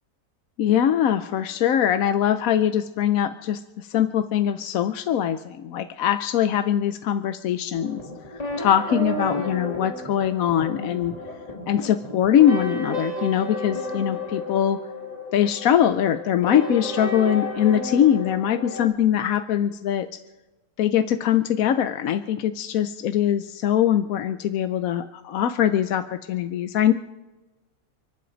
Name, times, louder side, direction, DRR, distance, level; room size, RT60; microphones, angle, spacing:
voice 1, 0.6-8.0 8.6-11.1 11.7-14.8 15.3-20.1 20.8-26.9, left 10 dB, 70° left, 10 dB, 1.1 m, -22 dB
sound 1, 7.8-18.9, left 1 dB, 25° left, 2.7 m, -32 dB
30.0 x 11.0 x 4.0 m, 1.1 s
omnidirectional pair, 1.6 m